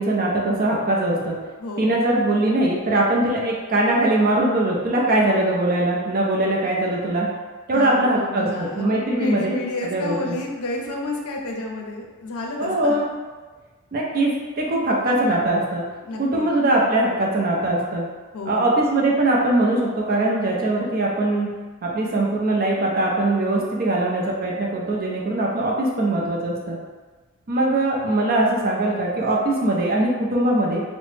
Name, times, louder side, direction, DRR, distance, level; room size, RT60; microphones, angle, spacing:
voice 1, 0.0-1.4 1.8-7.3 7.7-9.6 9.8-10.4 12.6-13.0 13.9-15.8 16.2-18.1 18.5-21.5 21.8-26.8 27.5-30.8, right 1 dB, 40° right, -2 dB, 0.5 m, -21 dB
voice 2, 1.6-2.0 7.7-13.0 16.0-16.5 18.3-18.7, left 2 dB, 80° left, 1 dB, 0.5 m, -31 dB
2.9 x 2.1 x 3.2 m, 1.3 s
head